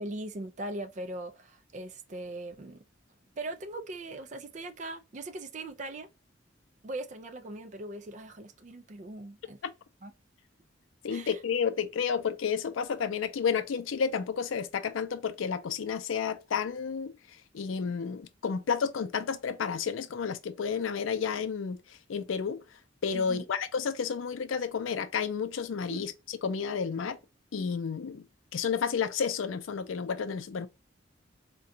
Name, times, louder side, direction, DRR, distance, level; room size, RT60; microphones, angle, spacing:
voice 1, 0.0-2.8 3.4-6.1 6.8-9.6 10.0-10.1 11.1-11.4 23.1-23.4 25.9-26.1, right 2 dB, 40° right, 0.4 m, -40 dB
voice 2, 11.0-17.1 17.5-22.6 23.0-26.1 26.4-27.2 27.5-28.2 28.5-30.7, left 6 dB, 85° left, 0.4 m, -31 dB
3.7 x 2.2 x 2.6 m
head